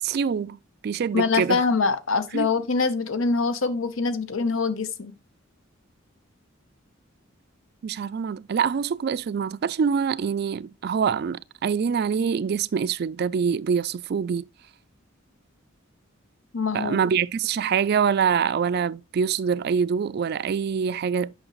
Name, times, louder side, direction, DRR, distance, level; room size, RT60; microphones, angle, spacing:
voice 1, 0.0-0.6 0.8-1.6 2.3-2.5 7.8-14.5 16.7-21.3, right 6 dB, 50° right, 0.3 m, -25 dB
voice 2, 1.1-5.1 16.5-17.1, left 4 dB, 80° left, 0.9 m, -24 dB
8.8 x 5.8 x 3.0 m
head